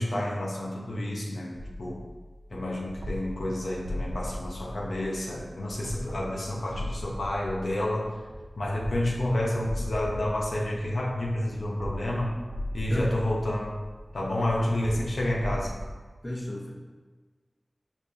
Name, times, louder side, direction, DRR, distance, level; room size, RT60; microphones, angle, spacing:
voice 1, 0.0-2.1 2.5-8.1 8.6-12.4 12.7-13.7 14.1-15.7, left 1 dB, 80° left, -4 dB, 0.7 m, -29 dB
sound 1, 1.5-15.9, left 1 dB, 70° right, 0.5 m, -38 dB
voice 2, 16.2-16.7, left 1 dB, 20° left, -2 dB, 0.9 m, -32 dB
5.1 x 2.6 x 3.3 m, 1.4 s
cardioid pair, 40°, 0 cm